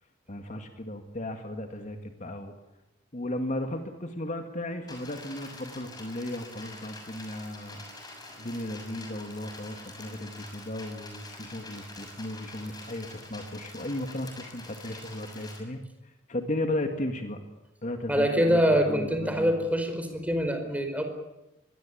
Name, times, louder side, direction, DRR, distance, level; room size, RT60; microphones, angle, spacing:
voice 1, 0.3-2.5 3.1-7.8 8.4-15.8 16.3-17.4 17.8-19.5, left 1 dB, 40° left, 5 dB, 2.0 m, -35 dB
sound 1, 4.9-15.6, left 2 dB, 20° left, 6.7 m, -46 dB
voice 2, 18.1-21.0, equal, 10° right, 6 dB, 4.9 m, -25 dB
24.5 x 21.0 x 8.7 m, 0.94 s
head